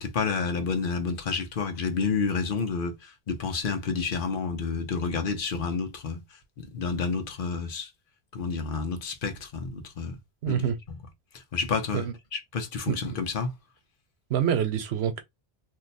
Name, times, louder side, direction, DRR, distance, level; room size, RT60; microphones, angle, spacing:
voice 1, 0.0-6.2 6.6-7.9 8.3-10.2 10.5-11.0 11.3-13.5, left 5 dB, 60° left, 1.0 m, -30 dB
voice 2, 10.4-10.8 11.9-12.1 12.9-13.0 14.3-15.2, right 9 dB, 90° right, 0.9 m, -26 dB
2.7 x 2.2 x 4.0 m
omnidirectional pair, 1.0 m